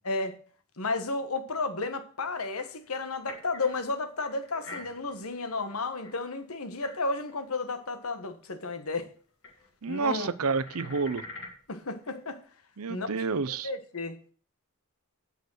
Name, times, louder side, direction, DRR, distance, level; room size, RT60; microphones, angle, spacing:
voice 1, 0.8-9.1 9.9-10.3 11.7-12.4 12.9-13.1 13.5-14.2, left 3 dB, 80° left, 1.4 m, -32 dB
sound 1, 2.2-3.8 4.2-6.4 6.8-7.4 7.7-7.8 8.0-8.1 9.4-9.7 9.9-11.6 12.0-12.4, left 2 dB, 55° left, 3.0 m, -47 dB
voice 2, 9.8-11.2 12.8-13.7, right 4 dB, 80° right, 0.7 m, -29 dB
9.2 x 6.6 x 6.3 m
head